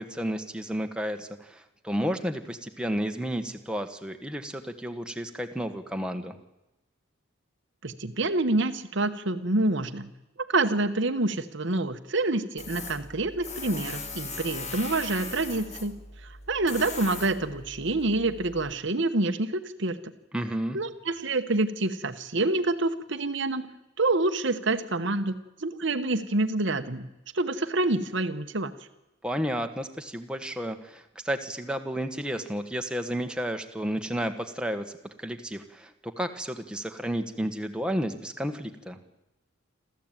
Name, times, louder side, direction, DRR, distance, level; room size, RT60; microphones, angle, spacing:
voice 1, 0.0-6.4 20.3-20.8 29.2-34.9 35.2-39.0, equal, 5° right, 5 dB, 1.5 m, -32 dB
voice 2, 7.8-10.1 10.4-15.9 16.5-20.0 20.7-23.7 24.0-27.1 27.3-28.7, right 2 dB, 60° right, 7 dB, 1.2 m, -27 dB
Tools, 12.6-18.7, left 3 dB, 30° left, 2.3 m, -39 dB
27.5 x 14.0 x 9.2 m, 0.96 s
head